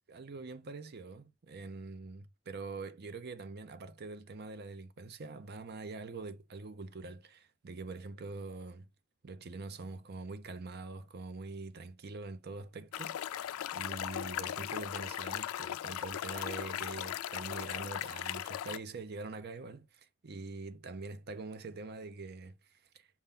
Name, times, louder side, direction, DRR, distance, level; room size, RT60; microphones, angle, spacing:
voice 1, 0.1-8.9 9.2-23.1, right 3 dB, 50° right, 0.6 m, -44 dB
sound 1, 12.9-18.8, left 11 dB, 90° left, 0.3 m, -38 dB
5.5 x 2.3 x 3.6 m
head